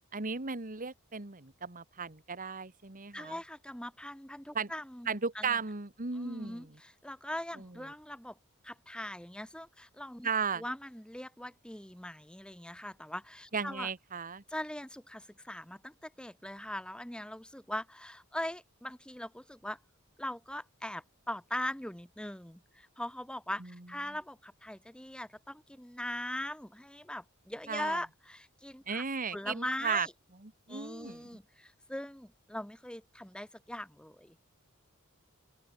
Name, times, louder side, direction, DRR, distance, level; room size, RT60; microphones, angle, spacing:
voice 1, 0.1-3.4 4.5-4.7 5.1-6.7 10.2-10.6 13.5-14.4 27.7-28.0 28.9-30.1 30.7-31.3, right 5 dB, 40° right, 1.9 m, -35 dB
voice 2, 3.1-5.6 6.1-8.4 8.6-13.9 14.5-19.8 20.2-29.0 29.3-30.1 30.7-34.4, left 1 dB, 5° left, 1.5 m, -41 dB
open air
head